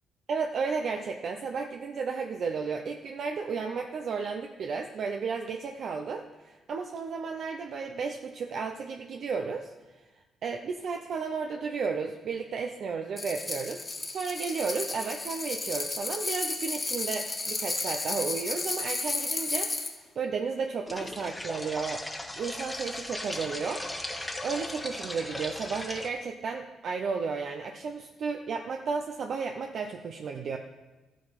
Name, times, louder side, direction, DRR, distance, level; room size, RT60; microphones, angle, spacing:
voice 1, 0.3-10.0 10.4-22.0 22.4-30.6, right 5 dB, 60° right, 4 dB, 0.7 m, -33 dB
sound 1, 13.2-19.9, left 3 dB, 25° left, 1.7 m, -33 dB
sound 2, 20.9-26.1, left 1 dB, 10° left, 1.3 m, -37 dB
13.0 x 7.6 x 5.2 m, 1.2 s
cardioid pair, 90°, 0 cm